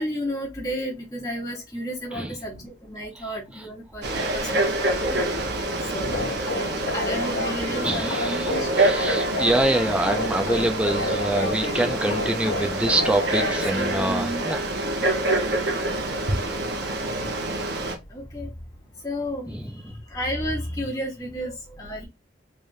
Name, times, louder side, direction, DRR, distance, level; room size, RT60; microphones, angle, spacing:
voice 1, 0.0-8.9 12.0-12.8 13.7-14.4 16.5-16.7 17.1-17.7 18.1-22.1, equal, 20° left, 1.0 m, -33 dB
Frog, 4.0-18.0, right 2 dB, 65° right, 0.9 m, -26 dB
sound 1, 6.1-14.1, left 2 dB, 80° left, 0.6 m, -31 dB
voice 2, 7.8-8.5 8.8-14.6 19.5-19.6, right 1 dB, 5° right, 0.4 m, -25 dB
3.4 x 3.3 x 2.6 m
head